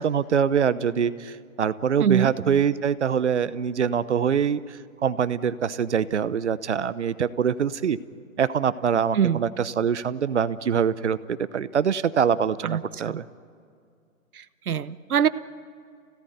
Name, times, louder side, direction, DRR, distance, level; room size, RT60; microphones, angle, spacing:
voice 1, 0.0-8.0 8.4-13.2, right 7 dB, 55° right, 16 dB, 0.9 m, -24 dB
voice 2, 2.0-2.3 9.1-9.4 12.6-12.8 13.0-13.2 14.3-15.3, right 8 dB, 85° right, 15 dB, 1.1 m, -23 dB
29.0 x 18.0 x 9.4 m, 2.3 s
hypercardioid pair, 175°, 43 cm